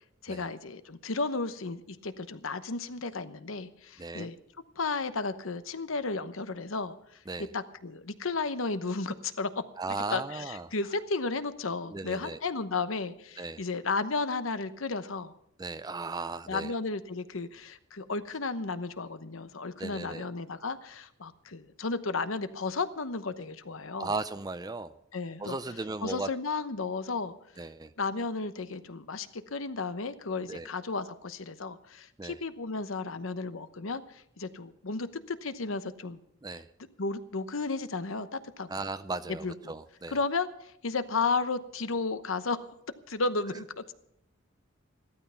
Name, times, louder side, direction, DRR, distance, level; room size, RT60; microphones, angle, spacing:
voice 1, 0.2-4.4 4.8-7.0 7.5-9.5 10.1-15.3 16.5-24.1 25.1-25.6 26.0-27.3 28.0-36.2 37.0-38.7 39.4-39.7 40.1-42.6 43.1-43.9, left 3 dB, 80° left, 11 dB, 1.0 m, -33 dB
voice 2, 9.8-10.7 11.9-12.4 13.4-13.6 15.6-16.7 19.8-20.2 24.0-24.9 25.4-26.3 27.6-27.9 30.5-30.7 32.2-32.4 36.4-36.7 38.7-40.2, right 3 dB, 20° right, 12 dB, 0.4 m, -36 dB
15.0 x 13.0 x 5.7 m, 0.75 s
head